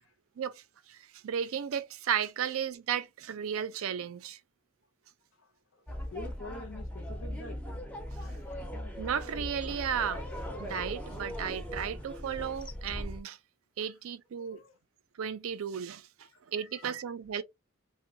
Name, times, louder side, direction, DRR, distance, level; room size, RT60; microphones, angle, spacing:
voice 1, 1.2-4.4 9.0-10.2 10.6-13.4 13.8-14.6 15.2-16.1 16.5-17.4, right 8 dB, 80° right, 0.4 m, -34 dB
voice 2, 5.4-7.6 8.2-8.5 13.9-14.0 14.4-14.8 16.3-16.4 16.7-17.0, left 3 dB, 65° left, 0.6 m, -47 dB
sound 1, 5.9-13.2, equal, 5° left, 0.4 m, -39 dB
2.9 x 2.0 x 2.6 m
head